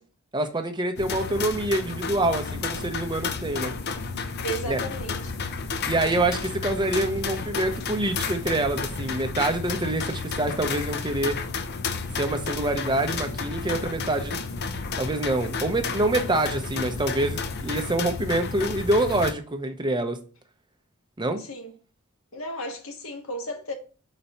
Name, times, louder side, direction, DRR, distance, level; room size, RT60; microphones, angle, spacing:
voice 1, 0.3-3.7 4.7-4.8 5.9-11.4 12.2-14.4 15.0-20.2 21.2-21.4, right 2 dB, 20° right, 0.7 m, -26 dB
sound 1, 1.0-19.3, left 4 dB, 50° left, 0.6 m, -32 dB
voice 2, 4.4-5.3 21.4-21.7 22.3-23.7, right 1 dB, 70° left, 1.4 m, -34 dB
4.6 x 4.1 x 5.5 m
head